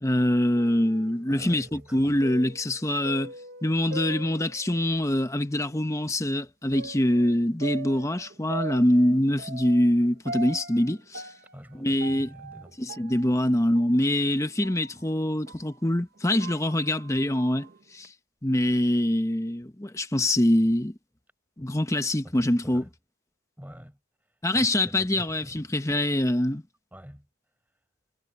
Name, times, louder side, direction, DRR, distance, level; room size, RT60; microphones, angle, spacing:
voice 1, 0.0-3.3 3.6-11.3 11.8-12.3 12.8-18.1 18.4-20.9 21.6-22.8 24.4-26.6, left 1 dB, 15° left, 0.9 m, -24 dB
sound 1, 0.6-5.2 5.6-5.7 6.7-15.8 16.2-18.1, right 3 dB, 45° right, 1.1 m, -42 dB
voice 2, 1.3-2.2 11.5-12.8 22.2-22.9 23.6-25.6 26.9-27.3, equal, 10° right, 5.3 m, -46 dB
head